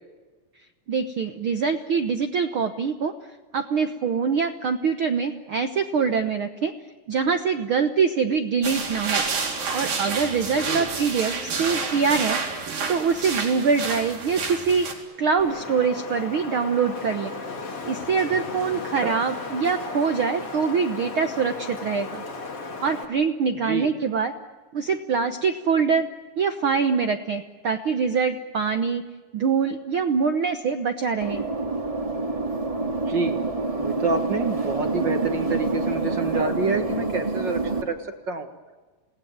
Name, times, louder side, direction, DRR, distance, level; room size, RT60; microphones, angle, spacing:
voice 1, 0.9-3.1 3.5-6.7 7.1-9.2 9.7-12.6 12.9-14.9 15.2-17.3 17.9-22.2 22.8-24.3 24.7-26.1 26.4-29.0 29.3-31.4, right 5 dB, 70° right, 8 dB, 1.2 m, -24 dB
sound 1, 8.6-14.9, right 4 dB, 85° right, 5.6 m, -29 dB
voice 2, 10.5-10.9 19.0-19.2 23.5-23.9 33.1-33.4 33.8-38.5, right 4 dB, 45° right, 6 dB, 1.7 m, -27 dB
Wind, 15.4-23.0, left 3 dB, 45° left, 3.8 m, -35 dB
sound 2, 31.2-37.8, right 3 dB, 15° right, 1.7 m, -27 dB
28.5 x 19.5 x 9.5 m, 1.3 s
omnidirectional pair, 3.9 m